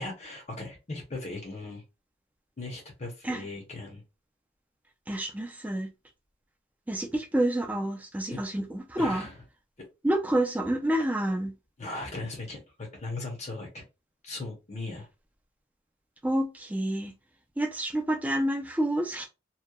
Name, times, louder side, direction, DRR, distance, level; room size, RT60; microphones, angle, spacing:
voice 1, 0.0-1.8 2.6-4.0 8.3-8.4 9.0-9.4 9.8-9.9 11.8-13.9 14.2-15.1, left 2 dB, 35° left, 0.7 m, -38 dB
voice 2, 5.1-5.9 6.9-9.3 10.0-11.5 16.2-17.1 17.6-19.3, right 1 dB, 10° right, 0.4 m, -28 dB
2.8 x 2.1 x 2.2 m
head